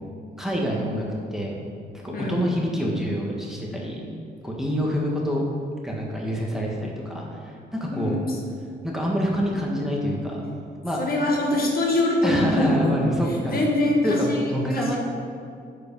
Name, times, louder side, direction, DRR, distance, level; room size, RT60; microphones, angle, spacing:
voice 1, 0.4-1.0 1.3-1.6 2.0-4.0 4.4-5.4 5.8-8.2 8.8-10.4 10.8-11.0 12.2-13.6 14.0-15.0, equal, ahead, -3 dB, 1.6 m, -27 dB
voice 2, 2.1-2.4 7.9-8.4 11.0-13.0 13.5-15.0, left 1 dB, 50° left, -1 dB, 1.6 m, -23 dB
9.4 x 5.2 x 5.5 m, 2.4 s
cardioid pair, 90°, 20 cm